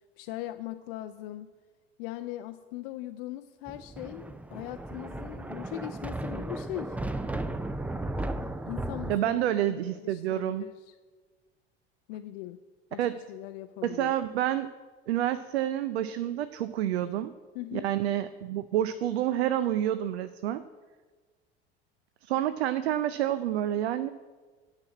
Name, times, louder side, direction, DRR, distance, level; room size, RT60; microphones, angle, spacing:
voice 1, 0.2-1.5 2.0-7.0 8.6-10.9 12.1-12.6 12.9-14.1 17.5-17.8, left 15 dB, 55° left, 8 dB, 0.5 m, -40 dB
Thunder, 3.7-9.2, right 2 dB, 5° right, 0.4 m, -35 dB
voice 2, 9.1-10.7 13.0-13.2 13.8-14.7 15.1-17.3 17.7-20.6 22.2-24.1, right 12 dB, 70° right, 13 dB, 0.5 m, -28 dB
9.5 x 6.1 x 7.4 m, 1.4 s
figure-of-eight pair, 70°, 33 cm